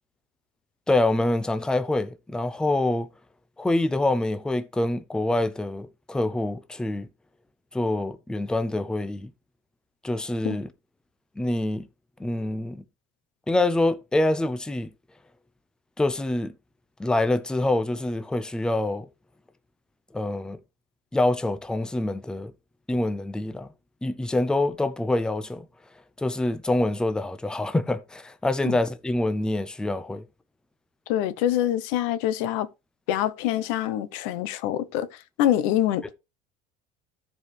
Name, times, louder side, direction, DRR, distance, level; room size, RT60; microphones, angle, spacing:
voice 1, 0.9-3.1 3.6-7.1 7.7-9.3 10.0-10.7 11.4-11.9 12.2-12.8 13.5-14.9 16.0-16.5 17.0-19.1 20.1-20.6 21.1-22.5 22.9-23.7 24.0-25.7 26.2-30.2, left 2 dB, 5° left, 0.5 m, -25 dB
voice 2, 31.1-32.7 33.1-36.1, left 12 dB, 80° left, 0.9 m, -25 dB
14.0 x 4.8 x 3.3 m
cardioid pair, 135°, 16 cm